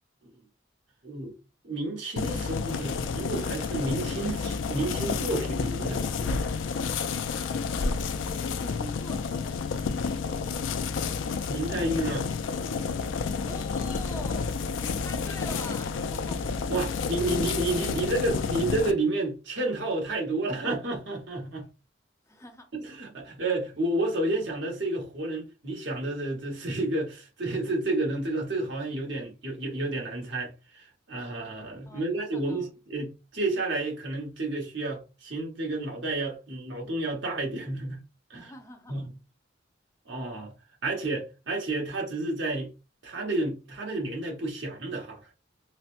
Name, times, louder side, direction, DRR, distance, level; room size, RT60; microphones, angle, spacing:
voice 1, 1.0-1.3 1.6-6.4 11.4-12.3 16.7-21.7 22.7-38.0 38.3-38.5 38.9-39.1 40.1-40.5 40.8-42.7 43.0-45.2, right 2 dB, 65° right, 1.2 m, -31 dB
sound 1, 2.2-18.9, left 5 dB, 80° left, 0.4 m, -30 dB
voice 2, 8.5-9.4 13.4-14.5 14.8-16.4 22.3-22.7 31.9-32.7 38.3-39.0, left 1 dB, 15° left, 0.6 m, -43 dB
4.1 x 2.1 x 2.4 m
head